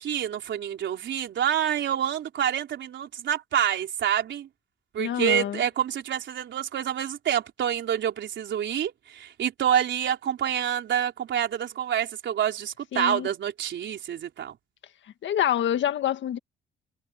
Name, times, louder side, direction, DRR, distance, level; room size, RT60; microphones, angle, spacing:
voice 1, 0.0-4.5 4.9-14.6, right 9 dB, 65° right, 4.2 m, -27 dB
voice 2, 5.0-5.6 12.9-13.3 15.2-16.4, left 10 dB, 70° left, 1.7 m, -26 dB
cardioid pair, 90°, 20 cm